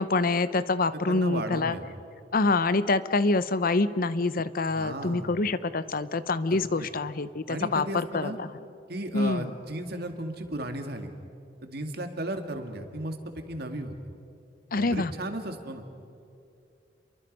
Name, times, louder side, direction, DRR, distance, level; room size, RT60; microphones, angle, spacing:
voice 1, 0.0-1.8 2.3-8.5 9.1-9.5 14.7-15.1, left 3 dB, 55° left, 14 dB, 0.8 m, -26 dB
voice 2, 0.9-1.8 4.7-5.3 6.5-6.9 7.5-8.4 8.9-11.1 11.6-13.9 14.8-15.9, right 1 dB, 60° right, 5 dB, 2.2 m, -35 dB
29.5 x 23.0 x 5.4 m, 2.5 s
head